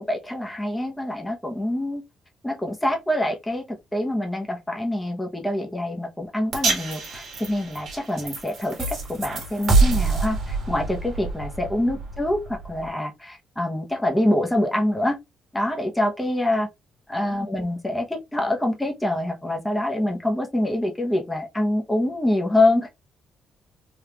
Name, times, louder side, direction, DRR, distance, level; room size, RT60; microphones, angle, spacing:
voice 1, 0.1-2.0 2.4-3.6 3.9-15.2 15.5-16.7 17.1-22.9, left 1 dB, 5° left, 0.6 m, -25 dB
sound 1, 6.5-12.9, right 3 dB, 55° right, 1.3 m, -26 dB
3.4 x 2.3 x 2.8 m
cardioid pair, 135°, 0 cm